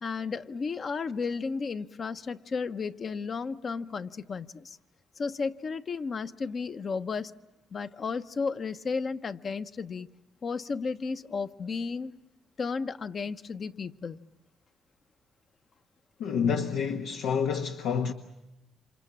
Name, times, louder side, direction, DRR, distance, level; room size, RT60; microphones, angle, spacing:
voice 1, 0.0-4.8 5.2-7.3 7.7-10.1 10.4-12.1 12.6-14.2, left 5 dB, 45° left, 0.9 m, -33 dB
voice 2, 16.2-18.1, left 6 dB, 90° left, 1.3 m, -28 dB
29.0 x 26.5 x 7.4 m
cardioid pair, 90°, 0 cm